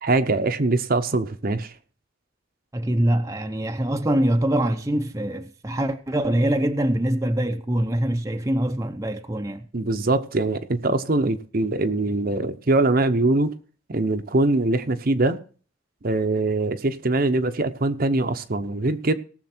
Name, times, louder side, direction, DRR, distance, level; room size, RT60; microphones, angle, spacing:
voice 1, 0.0-1.7 9.7-13.5 13.9-15.4 16.0-19.1, right 2 dB, 45° right, 0.8 m, -22 dB
voice 2, 2.7-9.7, right 1 dB, 15° right, 0.7 m, -24 dB
18.5 x 7.0 x 4.4 m
head